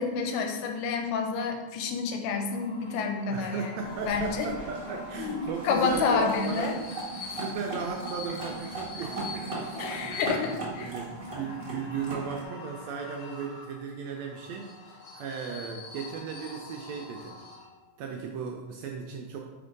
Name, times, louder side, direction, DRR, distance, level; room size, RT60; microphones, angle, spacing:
voice 1, 0.0-3.7 4.1-4.5 5.2-6.7 9.8-10.9, left 5 dB, 90° left, 4 dB, 2.4 m, -29 dB
sound 1, 2.2-18.0, left 4 dB, 65° left, 1.8 m, -45 dB
voice 2, 3.3-6.7 7.3-17.4 18.0-19.4, right 6 dB, 85° right, 1 dB, 1.5 m, -36 dB
sound 2, 3.8-12.4, right 2 dB, 35° right, 0.9 m, -38 dB
5.0 x 4.3 x 5.1 m, 1.2 s
omnidirectional pair, 3.7 m